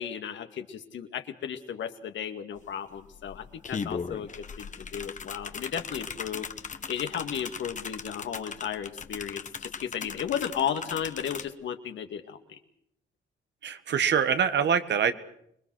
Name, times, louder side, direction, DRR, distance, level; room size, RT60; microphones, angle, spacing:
voice 1, 0.0-4.3 4.6-6.5 6.9-12.6, left 8 dB, 70° left, 7 dB, 2.2 m, -34 dB
sound 1, 2.6-2.7 3.0-11.5, left 5 dB, 40° left, 1.3 m, -38 dB
voice 2, 13.6-15.1, right 7 dB, 60° right, 11 dB, 1.7 m, -24 dB
26.0 x 21.0 x 6.4 m, 0.73 s
cardioid pair, 90°, 20 cm